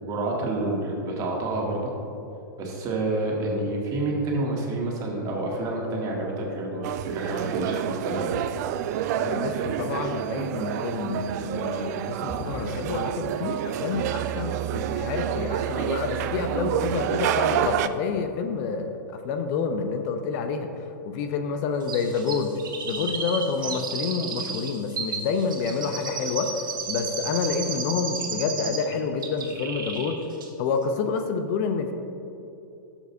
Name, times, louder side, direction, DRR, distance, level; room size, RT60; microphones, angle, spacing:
voice 1, 0.0-1.9 2.6-8.4, right 2 dB, 35° right, -2 dB, 2.0 m, -28 dB
sound 1, 6.8-17.9, right 10 dB, 55° right, 0.4 m, -28 dB
voice 2, 9.2-19.0 19.2-22.5 22.8-30.2 30.6-31.9, left 5 dB, 45° left, 6 dB, 0.7 m, -28 dB
sound 2, 12.3-14.1, right 2 dB, 15° right, 0.8 m, -41 dB
Chirp tweet, 21.9-28.9 29.2-30.2 30.4-30.5, right 5 dB, 80° right, 1.4 m, -33 dB
12.0 x 7.1 x 2.7 m, 2.9 s
hypercardioid pair, 110°, 11 cm